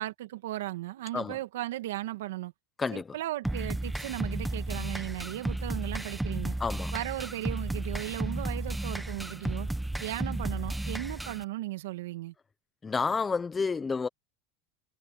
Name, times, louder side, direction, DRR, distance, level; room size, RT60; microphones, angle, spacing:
voice 1, 0.0-2.5 2.9-6.6 6.9-9.7 10.0-12.3, right 15 dB, 85° right, 2.2 m, -36 dB
voice 2, 2.8-3.2 6.6-6.9 12.8-14.1, left 4 dB, 15° left, 1.1 m, -30 dB
sound 1, 3.4-11.4, right 1 dB, 5° right, 1.0 m, -33 dB
supercardioid pair, 125°, 0 cm